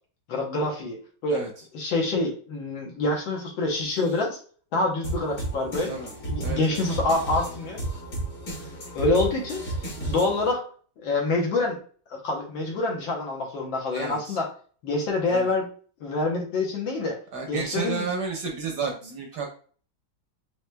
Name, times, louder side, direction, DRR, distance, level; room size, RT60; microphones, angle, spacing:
voice 1, 0.3-1.0 1.2-1.4 1.7-4.4 4.7-5.9 6.3-7.8 8.9-9.6 10.1-10.6 11.0-11.8 12.1-14.5 14.8-15.7 16.0-17.2 17.5-18.1, left 2 dB, 70° left, 0 dB, 1.6 m, -26 dB
voice 2, 1.3-1.6 5.8-6.1 6.4-6.8 13.9-14.4 15.3-15.5 17.3-19.5, right 4 dB, 65° right, 1 dB, 1.2 m, -32 dB
sound 1, 5.0-10.5, right 2 dB, 45° left, 1.9 m, -33 dB
4.7 x 3.1 x 2.2 m, 0.44 s
omnidirectional pair, 2.3 m